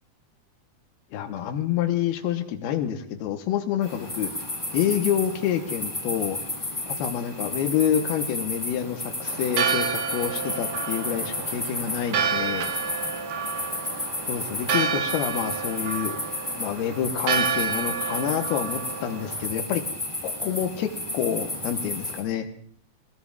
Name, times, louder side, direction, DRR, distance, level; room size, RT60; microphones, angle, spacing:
voice 1, 1.1-4.3 4.7-6.4 6.9-12.7 14.3-16.2 16.6-19.8 20.2-22.5, left 9 dB, 90° left, 6 dB, 2.9 m, -27 dB
sound 1, 3.8-22.2, left 2 dB, 10° left, 2.0 m, -33 dB
Church bell, 9.3-19.5, right 6 dB, 90° right, 3.2 m, -29 dB
22.0 x 18.0 x 2.3 m, 0.63 s
omnidirectional pair, 4.4 m